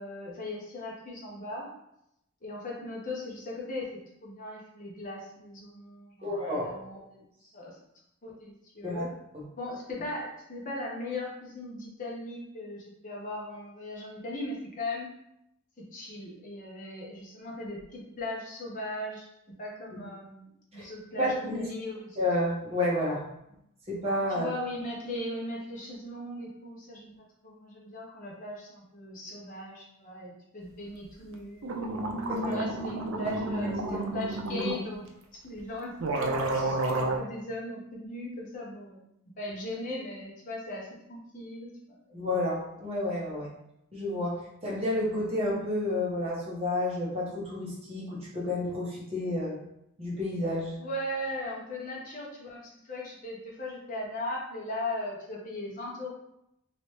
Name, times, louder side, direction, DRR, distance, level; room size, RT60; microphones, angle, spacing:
voice 1, 0.0-1.7 2.4-7.8 8.2-9.1 9.6-15.1 15.8-19.3 19.6-22.2 24.3-32.0 32.2-35.1 35.4-39.0 39.4-41.7 42.1-42.4 50.8-56.1, left 1 dB, 40° left, -3 dB, 0.9 m, -38 dB
voice 2, 6.2-6.8 8.8-9.1 20.7-20.9 21.2-21.7 22.2-23.2 23.9-24.5 32.3-32.6 33.9-34.1 42.1-43.5 43.9-44.4 44.6-49.5 50.0-50.7, left 1 dB, 30° right, -5 dB, 1.1 m, -30 dB
sound 1, 31.3-31.4 31.6-34.8 35.6-35.7 36.0-37.2, right 2 dB, 70° right, 0.5 m, -30 dB
3.0 x 3.0 x 3.2 m, 0.80 s
head